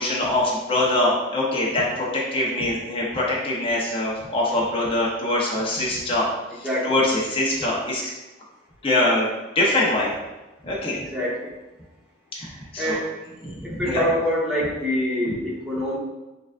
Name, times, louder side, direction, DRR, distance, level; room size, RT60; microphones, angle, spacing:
voice 1, 0.0-6.3 6.6-8.0 8.8-9.3 9.5-10.1 10.6-11.0 12.3-13.0 13.4-14.0 15.3-15.4, left 1 dB, 30° left, -5 dB, 0.8 m, -23 dB
voice 2, 6.6-7.0 11.1-11.5 12.8-13.1 13.6-16.0, left 1 dB, ahead, -8 dB, 1.2 m, -25 dB
6.6 x 2.5 x 2.4 m, 1.1 s
head